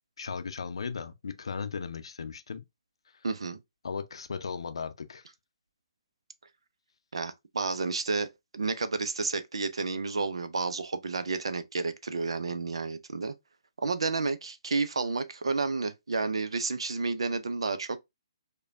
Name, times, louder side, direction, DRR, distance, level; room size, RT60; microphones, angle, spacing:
voice 1, 0.2-2.6 3.8-5.2, left 5 dB, 70° left, 0.5 m, -36 dB
voice 2, 3.2-3.6 7.1-13.3 13.8-18.0, right 4 dB, 75° right, 0.6 m, -31 dB
4.8 x 2.3 x 2.6 m
figure-of-eight pair, 135°, 3 cm